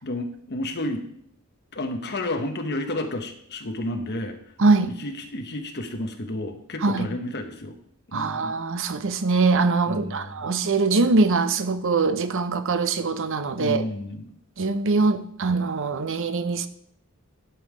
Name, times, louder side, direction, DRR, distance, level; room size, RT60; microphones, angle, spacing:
voice 1, 0.0-1.0 1.7-4.4 5.0-7.8 8.1-8.5 9.9-10.5 13.6-14.3, left 1 dB, 50° left, 1.1 m, -31 dB
voice 2, 4.6-4.9 6.8-7.1 8.1-13.9 14.6-16.7, right 3 dB, 65° right, 0.7 m, -22 dB
11.5 x 5.6 x 5.0 m
head